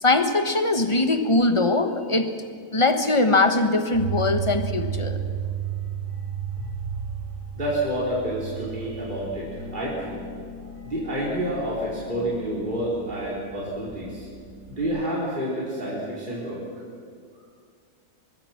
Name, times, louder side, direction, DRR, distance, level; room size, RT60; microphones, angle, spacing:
voice 1, 0.0-2.3 2.7-5.2, left 2 dB, 20° left, 7 dB, 1.2 m, -21 dB
sound 1, 3.9-14.8, right 6 dB, 60° left, 4.6 m, -34 dB
voice 2, 7.5-10.2 10.8-14.3 14.7-16.6, right 1 dB, 25° right, -7 dB, 4.7 m, -29 dB
25.0 x 21.0 x 6.0 m, 2.1 s
omnidirectional pair, 1.8 m